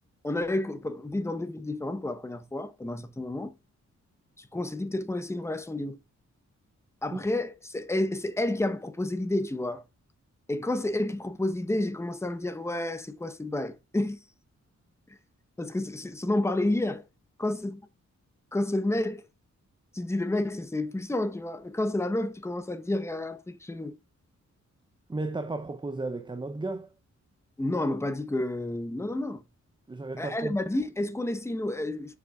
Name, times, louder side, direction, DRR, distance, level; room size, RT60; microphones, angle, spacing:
voice 1, 0.2-3.5 4.4-6.0 7.0-9.8 10.5-14.2 15.6-17.0 17.4-17.9 18.5-19.2 19.9-24.0 27.6-29.4 30.2-32.2, left 1 dB, 10° left, 0.9 m, -30 dB
voice 2, 25.1-26.9 29.9-30.6, right 2 dB, 15° right, 0.6 m, -34 dB
8.1 x 7.0 x 2.3 m
wide cardioid pair, 150°, 29 cm